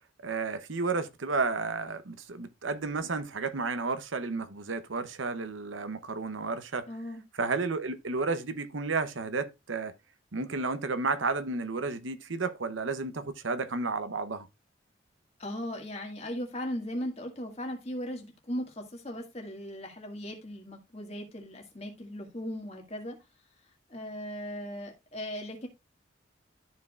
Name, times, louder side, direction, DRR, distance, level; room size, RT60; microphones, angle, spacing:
voice 1, 0.2-6.9 7.4-9.9 10.3-14.5, right 4 dB, 85° right, 0.9 m, -32 dB
voice 2, 6.9-7.2 15.4-23.2 23.9-25.7, equal, 35° left, 2.0 m, -38 dB
13.0 x 4.7 x 2.4 m
head